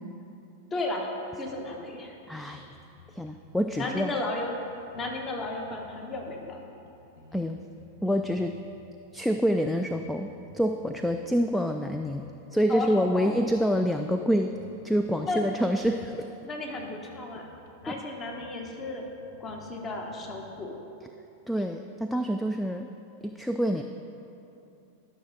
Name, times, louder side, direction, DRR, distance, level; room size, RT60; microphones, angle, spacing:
voice 1, 0.7-1.1 1.4-2.1 3.8-4.5 4.9-6.6 12.7-13.3 15.2-15.5 16.4-17.5 17.8-19.0 19.4-20.7, left 2 dB, 25° left, 1 dB, 1.2 m, -34 dB
sound 1, 1.5-2.1 2.3-4.0 4.4-6.5 6.8-8.8 9.1-9.3 9.7-11.3 11.7-12.3 12.6-13.7 14.0-16.1 16.5-16.6 16.8-17.1 17.4-20.7, left 3 dB, 55° left, 1.1 m, -54 dB
voice 2, 2.3-2.7 3.1-4.1 7.3-7.6 8.0-8.6 9.1-10.3 10.5-12.3 12.5-14.5 14.8-16.3 17.9-18.0 21.5-22.9 23.2-23.8, equal, 5° left, 6 dB, 0.3 m, -27 dB
12.0 x 6.3 x 3.9 m, 2.8 s
figure-of-eight pair, 90°, 0 cm